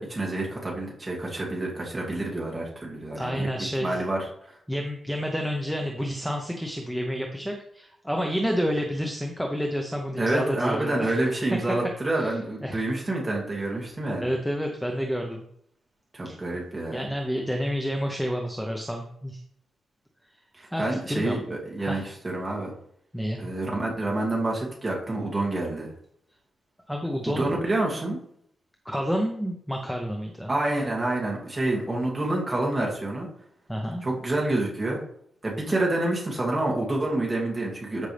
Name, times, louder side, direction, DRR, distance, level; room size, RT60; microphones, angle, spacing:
voice 1, 0.0-3.5 3.8-4.2 4.5-4.6 10.2-14.3 16.1-17.0 20.6-22.7 23.4-25.9 27.2-28.2 30.5-33.3 34.0-35.0 35.4-38.1, right 2 dB, 15° right, -3 dB, 2.4 m, -28 dB
voice 2, 3.1-4.0 4.7-11.1 12.2-12.8 14.2-15.4 16.2-16.4 16.9-19.4 20.7-21.4 21.8-22.0 23.1-23.4 26.9-27.5 28.8-30.5 33.7-34.0, equal, ahead, 1 dB, 0.8 m, -29 dB
13.0 x 5.3 x 3.4 m, 0.68 s
wide cardioid pair, 170°, 0 cm